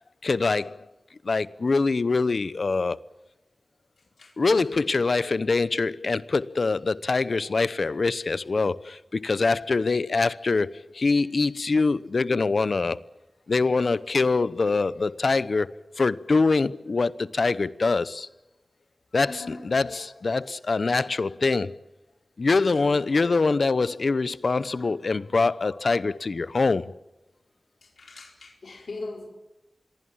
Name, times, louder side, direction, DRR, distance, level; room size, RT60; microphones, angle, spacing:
voice 1, 0.2-0.9 1.2-3.0 4.4-13.0 13.5-18.3 19.1-21.8 22.4-26.9, left 3 dB, 65° left, 0.9 m, -24 dB
voice 2, 19.2-20.0 20.3-20.4 23.2-23.3 28.0-29.3, left 3 dB, 80° left, 4.5 m, -40 dB
26.5 x 22.5 x 7.4 m
wide cardioid pair, 95°, 0 cm